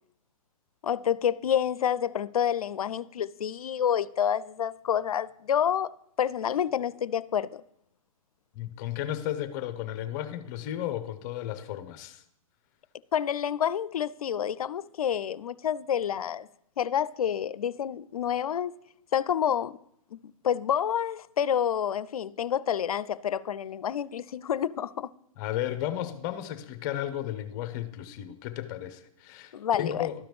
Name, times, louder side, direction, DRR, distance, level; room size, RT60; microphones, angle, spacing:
voice 1, 0.8-5.9 6.2-7.6 13.1-16.5 16.8-18.7 19.1-19.8 20.1-25.1 29.5-30.1, left 9 dB, 85° left, 0.4 m, -28 dB
voice 2, 8.5-12.2 25.4-30.1, left 12 dB, 30° left, 0.6 m, -34 dB
12.5 x 5.0 x 3.1 m
hypercardioid pair, 135°, 18 cm